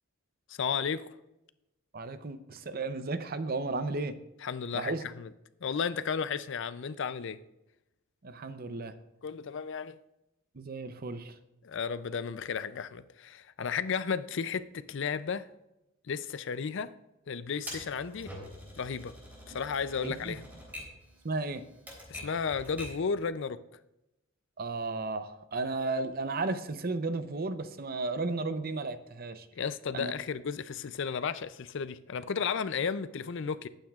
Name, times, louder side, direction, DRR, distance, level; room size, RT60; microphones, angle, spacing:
voice 1, 0.5-1.1 4.4-5.3 5.6-7.4 9.2-10.0 11.6-15.5 16.1-16.9 17.3-18.3 18.8-19.1 19.5-20.4 22.1-23.6 29.5-33.7, left 6 dB, 60° left, 0.5 m, -33 dB
voice 2, 1.9-4.2 4.7-5.0 8.2-8.9 10.5-11.4 20.0-20.4 21.2-21.6 24.6-29.5 29.9-30.1, right 3 dB, 45° right, 0.7 m, -34 dB
Typewriter, 17.7-23.1, left 1 dB, 10° right, 3.4 m, -46 dB
18.5 x 9.0 x 2.4 m
head